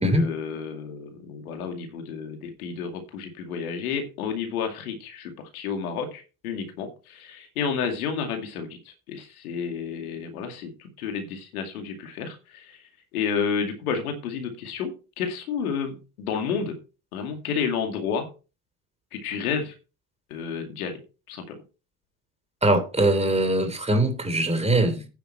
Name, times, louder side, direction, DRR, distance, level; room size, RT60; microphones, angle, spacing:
voice 1, 0.1-12.8 13.1-16.8 17.1-18.3 19.1-19.7 20.3-21.0 21.3-21.6, left 6 dB, 80° left, 2.4 m, -31 dB
voice 2, 22.6-25.1, right 1 dB, 15° right, 3.1 m, -22 dB
9.5 x 8.6 x 4.4 m
hypercardioid pair, 60°, 43 cm